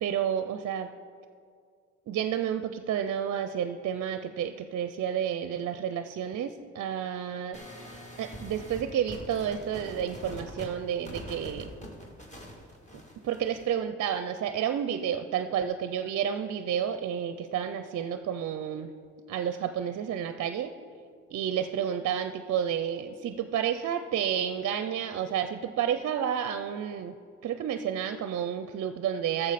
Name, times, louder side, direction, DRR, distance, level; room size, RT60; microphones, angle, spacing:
voice 1, 0.0-0.9 2.1-7.6 8.2-11.7 13.2-18.9 19.3-20.7 21.3-27.2 27.4-29.5, right 9 dB, 55° right, 9 dB, 0.5 m, -30 dB
sound 1, 7.5-13.7, equal, 25° left, 2.1 m, -44 dB
13.5 x 7.0 x 4.1 m, 2.2 s
cardioid pair, 90°, 30 cm